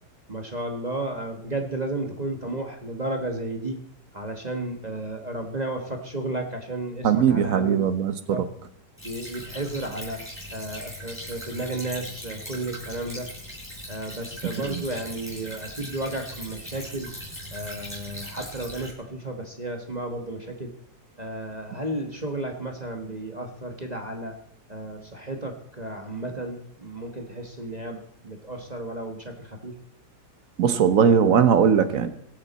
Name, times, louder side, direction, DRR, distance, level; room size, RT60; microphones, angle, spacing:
voice 1, 0.3-3.8 4.1-7.9 8.3-8.4 9.0-10.2 10.5-13.3 13.9-17.1 17.5-20.7 21.2-24.4 24.7-29.7, right 2 dB, 25° right, 3 dB, 1.3 m, -33 dB
voice 2, 7.0-8.1 14.6-14.8 30.6-32.1, right 7 dB, 55° right, 11 dB, 1.2 m, -19 dB
Stream / Trickle dribble, 9.0-18.9, equal, 5° left, 4.7 m, -39 dB
23.5 x 8.3 x 4.2 m, 0.69 s
omnidirectional pair, 1.9 m